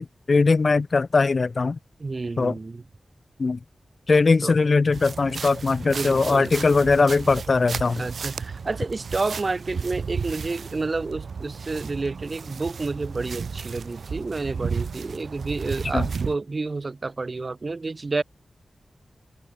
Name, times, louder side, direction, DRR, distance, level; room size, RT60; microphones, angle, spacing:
voice 1, 0.0-1.8 2.4-2.5 3.4-3.6 4.1-8.1 15.9-16.1, left 4 dB, 45° left, 1.6 m, -20 dB
voice 2, 2.0-2.8 4.4-4.5 5.8-6.6 8.0-18.2, right 3 dB, 35° right, 7.8 m, -30 dB
sound 1, 4.9-16.4, right 5 dB, 75° right, 1.6 m, -33 dB
wide cardioid pair, 140°, 0 cm